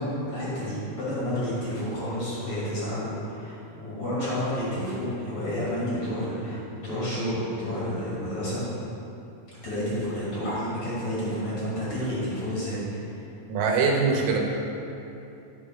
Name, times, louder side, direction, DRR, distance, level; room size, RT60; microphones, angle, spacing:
voice 1, 0.0-8.6 9.6-13.2, equal, 40° left, -9 dB, 2.3 m, -30 dB
voice 2, 13.5-14.4, right 4 dB, 80° right, 0 dB, 3.5 m, -22 dB
11.0 x 7.4 x 5.3 m, 2.8 s
omnidirectional pair, 5.8 m